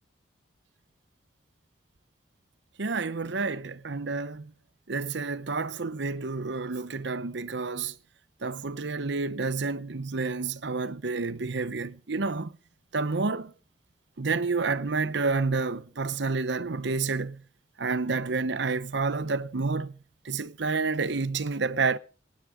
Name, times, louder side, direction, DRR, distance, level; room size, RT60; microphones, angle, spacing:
voice 1, 2.8-4.5 4.9-7.9 8.4-12.5 12.9-13.5 14.2-17.4 17.8-20.0 20.2-22.0, right 4 dB, 65° right, 0.9 m, -29 dB
19.0 x 10.5 x 5.0 m
head